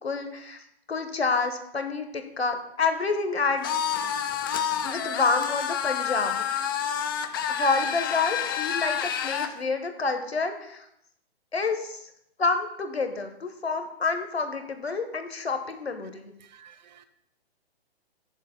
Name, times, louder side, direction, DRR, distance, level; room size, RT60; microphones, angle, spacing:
voice 1, 0.0-0.6 0.9-4.1 4.8-6.7 7.5-10.9 11.5-12.1 12.4-16.3, left 4 dB, 80° left, 7 dB, 1.3 m, -28 dB
sound 1, 3.6-9.5, left 8 dB, 20° left, 0.4 m, -29 dB
voice 2, 16.4-17.1, right 8 dB, 45° right, 10 dB, 0.9 m, -53 dB
15.0 x 7.1 x 2.2 m, 0.76 s
figure-of-eight pair, 120°, 31 cm